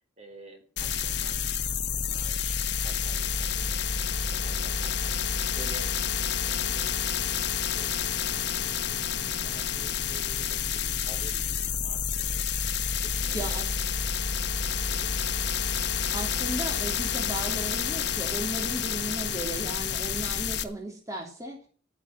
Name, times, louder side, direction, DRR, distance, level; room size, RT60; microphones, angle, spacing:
voice 1, 0.0-5.9 6.4-12.5 13.0-13.7 14.7-15.3, right 1 dB, 35° right, 5 dB, 3.7 m, -50 dB
sound 1, 0.8-20.6, left 7 dB, 65° left, 1.3 m, -29 dB
voice 2, 13.3-13.7 16.1-21.7, right 1 dB, 20° right, 0 dB, 3.0 m, -36 dB
13.0 x 9.8 x 7.7 m, 0.43 s
head